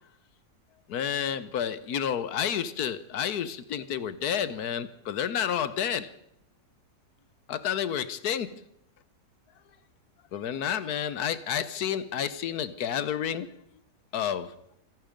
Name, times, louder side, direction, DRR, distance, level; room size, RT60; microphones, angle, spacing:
voice 1, 0.9-6.1 7.5-8.6 10.3-13.5 14.1-14.5, left 9 dB, 75° left, 15 dB, 1.4 m, -30 dB
26.0 x 11.0 x 5.2 m, 0.75 s
omnidirectional pair, 1.7 m